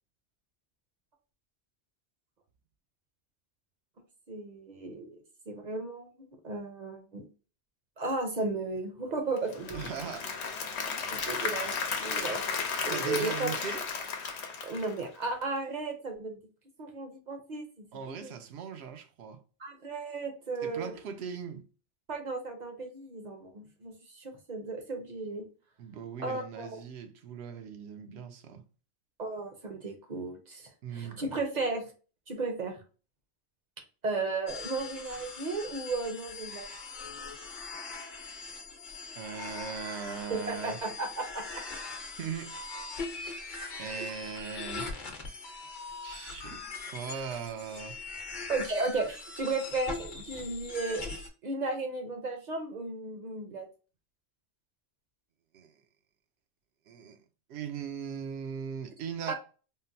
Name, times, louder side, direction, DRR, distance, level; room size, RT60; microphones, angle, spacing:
voice 1, 4.3-5.2 5.5-7.2 8.0-9.8 11.1-12.4 12.8-13.5 14.6-16.4 16.8-18.3 19.6-20.9 22.1-25.4 26.2-26.8 29.2-31.8 32.3-32.8 34.0-36.7 40.3-41.6 43.9-44.1 48.5-51.0 51.4-53.7 59.3-59.4, right 3 dB, 50° right, 0.7 m, -35 dB
Applause / Crowd, 9.4-15.4, left 5 dB, 85° left, 0.9 m, -34 dB
voice 2, 9.7-10.3 12.9-13.9 17.9-19.4 20.6-21.7 25.8-28.6 30.8-31.2 39.2-40.8 42.2-42.6 43.8-44.9 46.0-48.0 55.5-55.8 56.9-57.2 57.5-59.3, right 7 dB, 80° right, 0.8 m, -39 dB
sound 1, 34.5-51.3, left 4 dB, 50° left, 0.9 m, -41 dB
3.7 x 2.1 x 2.6 m
omnidirectional pair, 1.1 m